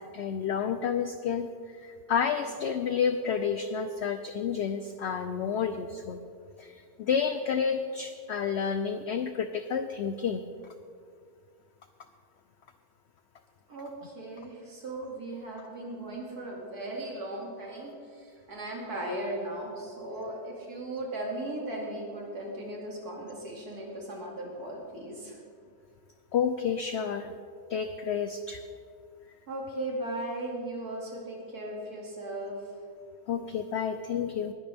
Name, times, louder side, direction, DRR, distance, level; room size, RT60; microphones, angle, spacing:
voice 1, 0.1-6.2 6.6-10.5 26.3-27.3 27.7-28.6 33.3-34.5, left 7 dB, 65° left, 9 dB, 0.7 m, -30 dB
voice 2, 13.7-25.4 29.5-32.6, right 1 dB, 85° right, -2 dB, 3.1 m, -37 dB
19.5 x 11.0 x 3.5 m, 2.2 s
omnidirectional pair, 1.6 m